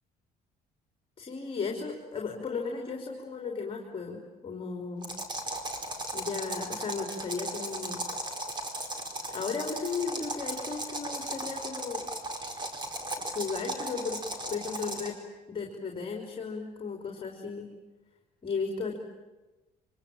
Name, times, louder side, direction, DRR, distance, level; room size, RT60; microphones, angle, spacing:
voice 1, 1.2-5.1 6.1-8.0 9.3-12.1 13.3-14.2 14.5-15.2 15.5-17.7 18.4-19.0, left 5 dB, 35° left, 1 dB, 3.8 m, -35 dB
sound 1, 5.0-15.2, right 1 dB, 25° right, 4.7 m, -36 dB
25.5 x 25.5 x 8.9 m, 1.2 s
cardioid pair, 110°, 17 cm